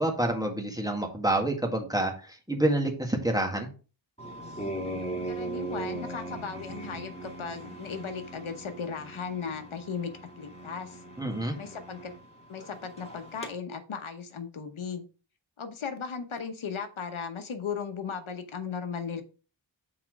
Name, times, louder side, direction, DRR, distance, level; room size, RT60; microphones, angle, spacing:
voice 1, 0.0-3.7 11.2-11.6, right 1 dB, 10° right, 2 dB, 1.8 m, -28 dB
sound 1, 4.2-13.5, right 2 dB, 15° left, 2.1 m, -39 dB
voice 2, 5.3-10.1 10.4-11.0 11.6-12.1 12.5-15.1 15.6-19.2, left 6 dB, 90° left, 7 dB, 1.0 m, -36 dB
5.9 x 4.3 x 4.7 m, 0.34 s
wide cardioid pair, 50°, 47 cm